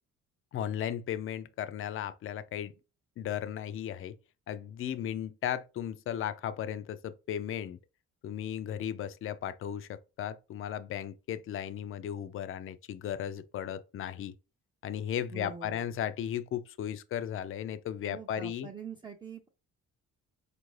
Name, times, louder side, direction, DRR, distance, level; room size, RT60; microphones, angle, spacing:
voice 1, 0.5-2.7 3.2-4.2 4.5-7.8 8.2-14.3 14.8-18.7, left 10 dB, 45° left, 0.4 m, -36 dB
voice 2, 15.3-15.9 18.1-19.5, right 6 dB, 15° right, 0.4 m, -44 dB
4.3 x 2.5 x 3.1 m
cardioid pair, 90°, 30 cm